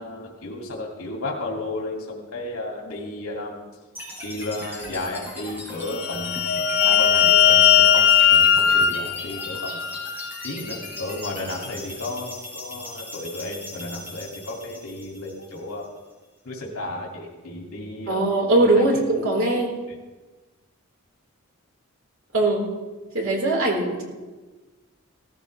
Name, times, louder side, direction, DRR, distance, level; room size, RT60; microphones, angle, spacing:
voice 1, 0.0-3.6 4.2-9.8 10.4-15.8 16.4-18.2 18.5-18.8, left 2 dB, 80° left, -2 dB, 2.4 m, -33 dB
sound 1, 3.9-16.0, left 1 dB, 10° right, 4.6 m, -39 dB
sound 2, 5.9-10.4, left 9 dB, 65° left, 1.4 m, -18 dB
voice 2, 18.1-19.7 22.3-22.6 23.1-24.0, right 2 dB, 70° right, -2 dB, 4.1 m, -20 dB
17.5 x 14.5 x 3.3 m, 1.3 s
head